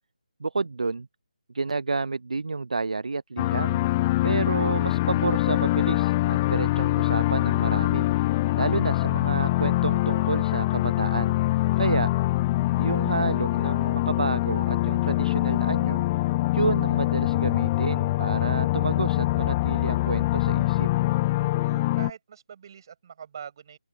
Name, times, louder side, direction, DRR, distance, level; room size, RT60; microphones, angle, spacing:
voice 1, 0.4-1.1 1.5-3.8 4.2-11.3 11.8-12.1 12.8-16.0 16.5-20.9, right 3 dB, 55° right, 0.8 m, -30 dB
sound 1, 3.4-22.1, left 18 dB, 15° left, 0.4 m, -24 dB
voice 2, 11.1-11.9 21.6-23.8, right 7 dB, 30° right, 6.3 m, -44 dB
open air
figure-of-eight pair, 150°, 4 cm